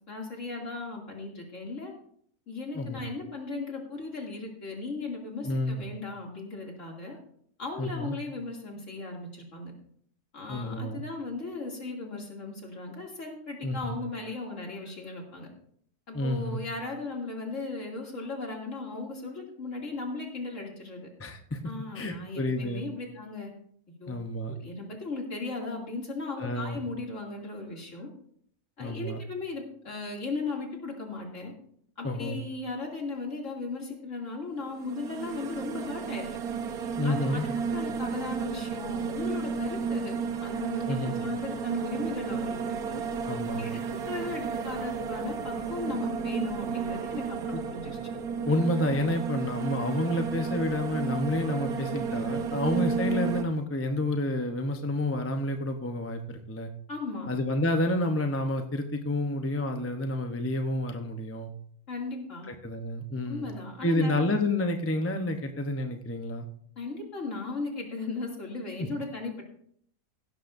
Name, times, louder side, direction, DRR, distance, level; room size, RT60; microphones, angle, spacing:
voice 1, 0.1-1.9 2.5-7.2 7.6-9.7 10.3-15.5 16.1-21.1 21.6-23.5 24.0-24.1 24.5-28.1 28.8-31.5 32.0-36.4 37.0-43.0 43.6-43.8 44.1-48.1 56.9-57.3 61.9-62.5 63.3-64.2 66.8-69.4, left 3 dB, 55° left, 0 dB, 3.0 m, -37 dB
voice 2, 5.4-5.8 7.8-8.1 10.5-11.0 13.6-14.0 16.1-16.6 21.2-21.6 21.9-22.8 24.1-24.6 26.4-26.8 28.8-29.2 32.0-32.4 37.0-37.5 40.9-41.2 43.3-43.7 47.5-47.6 48.5-56.7 57.3-61.5 62.5-63.5 63.8-66.5 68.8-68.9, left 1 dB, 15° left, 5 dB, 0.6 m, -29 dB
sound 1, 34.7-53.4, right 6 dB, 80° right, 1.4 m, -32 dB
16.5 x 12.0 x 2.6 m, 0.64 s
omnidirectional pair, 1.6 m